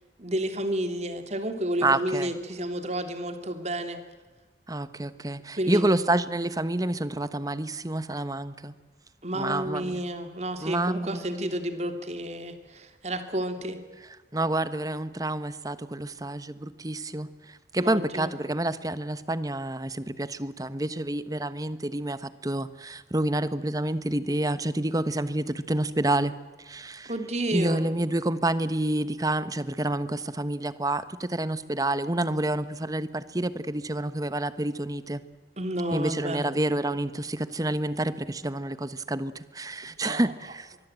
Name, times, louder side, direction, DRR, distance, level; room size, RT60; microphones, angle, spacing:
voice 1, 0.2-4.0 5.6-6.0 9.2-13.8 17.8-18.3 27.0-27.8 35.6-36.5 39.8-40.2, right 1 dB, 40° right, 8 dB, 2.9 m, -31 dB
voice 2, 1.8-2.3 4.7-8.7 9.3-10.0 10.6-11.5 14.3-26.3 26.6-27.1 27.5-35.2 35.9-40.7, right 1 dB, 20° right, 14 dB, 1.2 m, -28 dB
24.5 x 21.0 x 9.0 m, 1.3 s
head